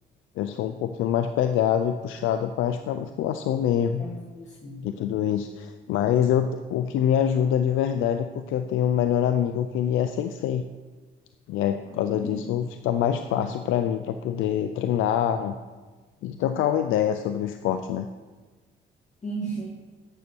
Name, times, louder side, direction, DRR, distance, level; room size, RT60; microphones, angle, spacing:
voice 1, 0.4-4.1 4.8-10.6 11.5-15.5 16.2-18.1, left 9 dB, 90° left, 8 dB, 0.5 m, -25 dB
voice 2, 4.0-4.8 11.9-12.3 19.2-19.7, right 2 dB, 35° left, -4 dB, 2.0 m, -35 dB
9.8 x 6.7 x 6.1 m, 1.3 s
cardioid pair, 90°, 20 cm